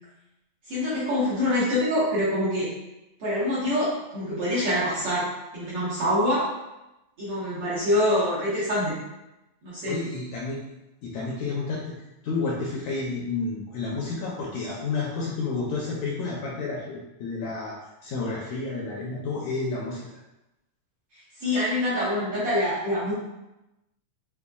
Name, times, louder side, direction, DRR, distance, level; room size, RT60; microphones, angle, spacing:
voice 1, 0.7-2.7 3.2-6.5 7.2-9.0 9.6-10.0 21.4-23.1, left 1 dB, 60° right, -10 dB, 1.6 m, -25 dB
voice 2, 9.9-10.6 11.0-11.9 12.2-17.8 18.0-20.0, left 3 dB, 80° left, -4 dB, 1.6 m, -30 dB
6.8 x 2.3 x 2.3 m, 0.96 s
omnidirectional pair, 3.6 m